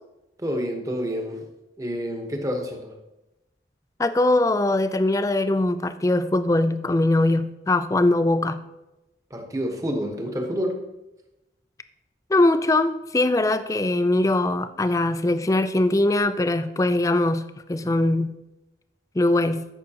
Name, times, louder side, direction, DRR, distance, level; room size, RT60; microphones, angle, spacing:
voice 1, 0.4-1.4 1.8-3.0 9.3-10.8 17.8-17.9, equal, 20° right, 3 dB, 1.1 m, -28 dB
voice 2, 4.0-8.6 12.3-18.3 19.2-19.7, left 2 dB, 20° left, 12 dB, 0.3 m, -21 dB
13.5 x 5.8 x 2.9 m, 0.97 s
head